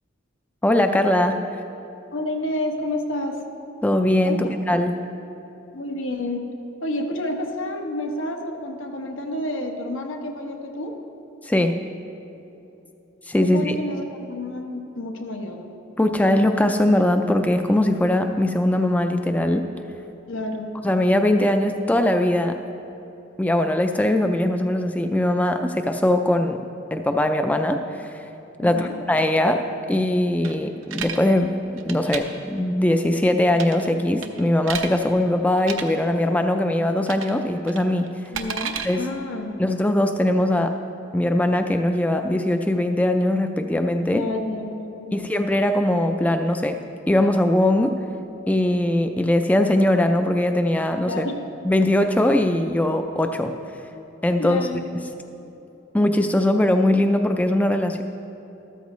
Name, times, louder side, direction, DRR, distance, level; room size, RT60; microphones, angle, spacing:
voice 1, 0.6-1.4 3.8-4.9 11.4-11.8 13.3-13.8 16.0-19.7 20.8-22.6 23.4-26.6 26.9-28.2 28.6-31.5 31.8-38.1 38.8-39.0 39.6-40.8 41.1-44.3 45.1-46.8 47.1-48.0 48.5-51.2 51.6-53.5 54.2-54.7 55.9-58.0, left 1 dB, 10° left, 6 dB, 0.3 m, -21 dB
voice 2, 2.1-3.4 4.2-4.5 5.7-6.4 6.8-11.0 13.4-15.7 20.3-20.8 28.6-29.0 38.3-39.6 44.1-45.3 51.1-51.4 54.4-54.9, left 1 dB, 85° left, 3 dB, 1.2 m, -29 dB
sound 1, 30.4-31.2 31.8-32.2 33.5-33.9 34.2-34.9 35.6-35.8 37.1-37.4 37.7-38.9, right 7 dB, 90° right, 0.8 m, -31 dB
13.5 x 13.5 x 3.1 m, 2.9 s
head